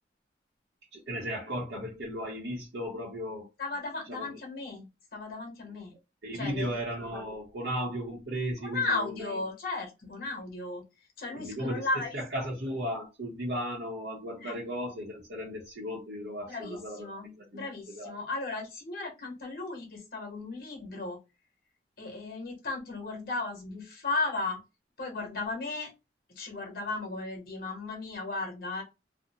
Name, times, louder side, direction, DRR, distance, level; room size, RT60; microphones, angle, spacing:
voice 1, 0.9-3.5 4.1-4.4 6.2-9.4 11.4-11.8 12.1-17.1 17.5-17.7 18.0-18.1, equal, 75° right, 0.8 m, -35 dB
voice 2, 3.6-5.9 6.3-6.8 8.6-10.8 11.2-12.2 14.4-14.6 16.5-21.2 22.0-24.6 25.0-25.9 26.3-28.8, left 3 dB, 55° left, 1.0 m, -35 dB
2.5 x 2.1 x 2.7 m
head